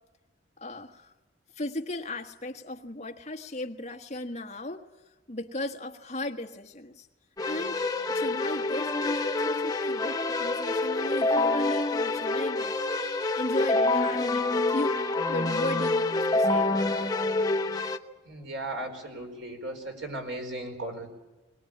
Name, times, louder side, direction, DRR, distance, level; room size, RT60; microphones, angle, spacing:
voice 1, 0.6-1.1 1.5-4.9 5.3-7.1 7.4-7.8 8.1-12.7 13.3-15.0 15.3-17.1, left 1 dB, 35° left, 4 dB, 1.5 m, -36 dB
Keyboard (musical), 7.4-18.0, left 2 dB, 20° left, 0.8 m, -27 dB
voice 2, 18.2-21.1, right 1 dB, 80° right, 3 dB, 4.7 m, -36 dB
22.0 x 19.5 x 8.7 m, 1.1 s
head